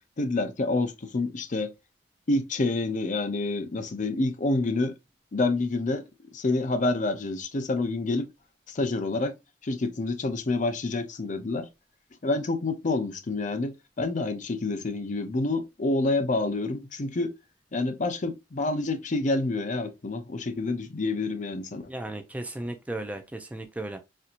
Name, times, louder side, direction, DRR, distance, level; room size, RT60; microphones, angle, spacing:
voice 1, 0.2-1.7 2.3-4.9 5.3-6.0 6.3-8.3 8.7-9.3 9.6-11.7 12.2-17.3 17.7-21.9, left 2 dB, 45° left, 0.5 m, -28 dB
voice 2, 21.9-24.0, right 1 dB, 10° right, 0.3 m, -35 dB
4.3 x 2.6 x 2.5 m
head